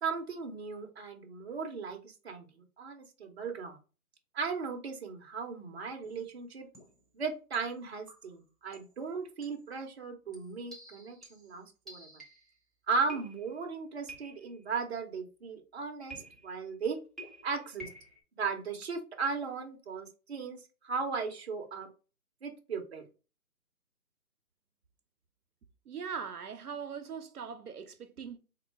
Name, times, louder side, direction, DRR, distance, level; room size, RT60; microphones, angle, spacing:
voice 1, 0.0-2.0 2.2-3.8 4.3-6.7 7.1-12.1 12.9-17.0 17.4-17.9 18.3-20.6 20.8-21.9 22.4-23.0, right 5 dB, 45° right, 0.8 m, -36 dB
sound 1, 6.0-6.3 6.7-7.1 7.5-8.4 8.7-9.0 9.4-9.7 10.3-12.6 13.1-13.7 14.1-14.6 16.1-16.7 17.2-18.2, right 1 dB, ahead, 0.4 m, -51 dB
voice 2, 25.9-28.4, right 6 dB, 75° right, 0.8 m, -40 dB
3.7 x 2.2 x 4.4 m
hypercardioid pair, 160°, 45 cm